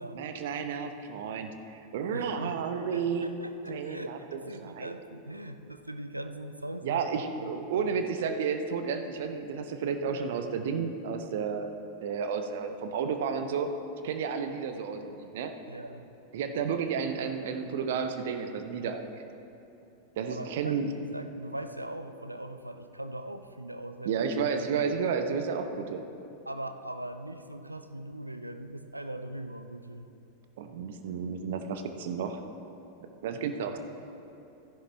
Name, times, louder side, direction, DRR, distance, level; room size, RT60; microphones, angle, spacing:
voice 1, 0.1-3.3 3.7-4.9 6.8-11.7 12.0-13.7 14.0-15.5 16.3-19.2 20.2-20.9 24.0-26.0 30.6-32.4 33.2-33.8, right 6 dB, 55° right, 7 dB, 0.7 m, -32 dB
voice 2, 2.1-2.6 2.9-8.0 15.7-16.1 20.3-24.3 26.5-30.1, right 1 dB, 85° right, 9 dB, 0.5 m, -40 dB
14.0 x 11.0 x 3.3 m, 2.8 s
figure-of-eight pair, 90°, 0 cm